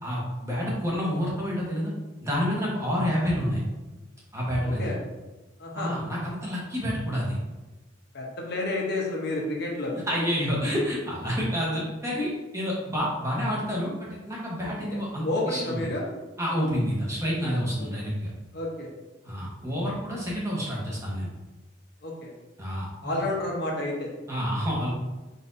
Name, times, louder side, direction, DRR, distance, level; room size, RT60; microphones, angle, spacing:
voice 1, 0.0-1.9 2.2-3.6 4.3-4.9 5.7-7.4 10.1-15.8 16.4-18.3 19.2-21.3 22.6-23.2 24.3-24.9, equal, 15° right, -4 dB, 0.9 m, -28 dB
voice 2, 4.6-5.0 5.6-5.9 8.1-10.0 14.6-16.0 17.8-17.9 18.5-18.9 22.0-22.3 23.0-24.1, left 2 dB, 55° left, -1 dB, 0.8 m, -30 dB
4.1 x 4.0 x 2.6 m, 1.1 s
head